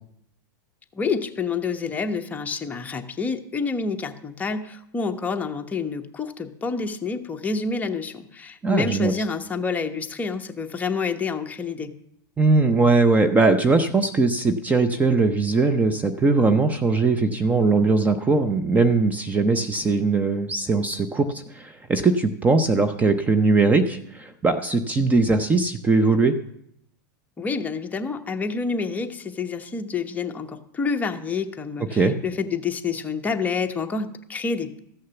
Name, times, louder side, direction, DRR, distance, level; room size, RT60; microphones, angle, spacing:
voice 1, 0.9-11.9 27.4-34.8, left 4 dB, 15° left, 5 dB, 1.0 m, -28 dB
voice 2, 8.6-9.1 12.4-26.4 31.9-32.1, right 3 dB, 15° right, 8 dB, 0.7 m, -20 dB
14.5 x 6.4 x 7.0 m, 0.74 s
hypercardioid pair, 125°, 11 cm